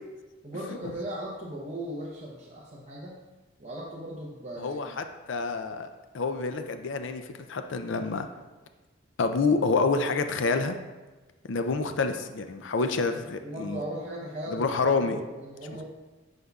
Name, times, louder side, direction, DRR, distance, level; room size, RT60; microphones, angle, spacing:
voice 1, 0.4-3.2 3.6-5.0 12.9-13.1 13.4-15.8, right 1 dB, 35° right, -5 dB, 0.8 m, -38 dB
voice 2, 4.6-5.9 6.1-7.2 7.5-8.3 9.2-10.8 11.5-13.8 14.5-15.2, left 4 dB, 60° left, 8 dB, 0.4 m, -27 dB
9.8 x 5.4 x 2.4 m, 1.2 s
head